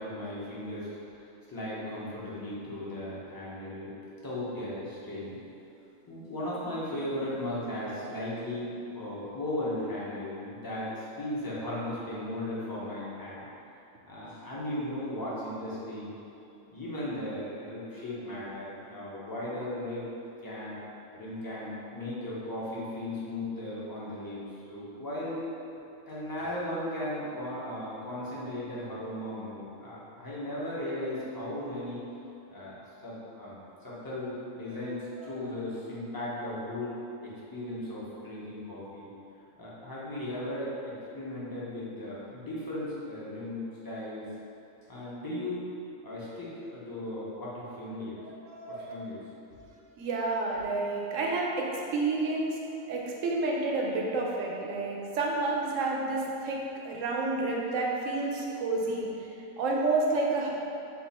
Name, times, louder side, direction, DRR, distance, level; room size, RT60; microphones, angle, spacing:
voice 1, 0.0-3.9 4.2-5.4 6.1-13.4 14.1-16.1 16.7-20.1 20.4-20.8 21.1-24.4 24.7-25.4 26.1-32.0 32.5-32.7 33.0-33.6 33.8-37.0 37.2-39.1 39.6-40.7 41.1-44.2 44.9-45.6 46.0-48.2 48.9-49.2 49.5-49.6, left 1 dB, 20° left, -8 dB, 0.6 m, -36 dB
voice 2, 48.2-48.9 50.0-52.6 52.9-59.3 59.6-60.5, right 3 dB, 70° right, -2 dB, 1.0 m, -30 dB
4.0 x 2.4 x 4.2 m, 2.8 s
omnidirectional pair, 1.4 m